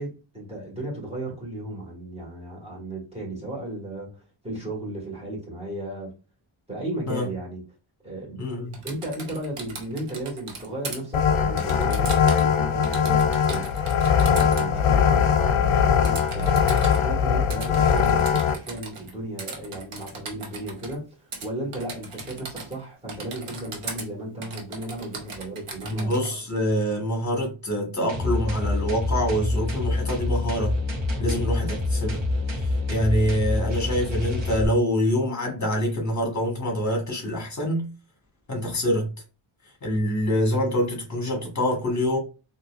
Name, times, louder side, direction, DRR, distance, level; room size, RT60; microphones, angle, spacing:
voice 1, 0.0-6.1 6.7-7.6 8.0-8.4 8.8-13.7 14.2-26.1 31.2-31.5, right 1 dB, 10° right, 1.6 m, -35 dB
voice 2, 8.4-8.7 25.9-30.7 31.2-32.2 32.6-37.9 38.5-39.1 39.8-42.2, equal, 35° left, 1.4 m, -25 dB
Typing, 8.7-11.0 11.6-12.5 12.8-14.7 16.0-17.0 17.5-19.1 19.4-21.0 21.3-21.5 21.7-22.8 23.1-24.1 24.4-26.3, right 4 dB, 85° right, 1.0 m, -38 dB
sound 1, 11.1-18.5, left 7 dB, 75° left, 0.6 m, -21 dB
sound 2, 28.1-34.6, left 2 dB, 60° right, 1.2 m, -26 dB
4.0 x 2.7 x 2.4 m
wide cardioid pair, 145°, 49 cm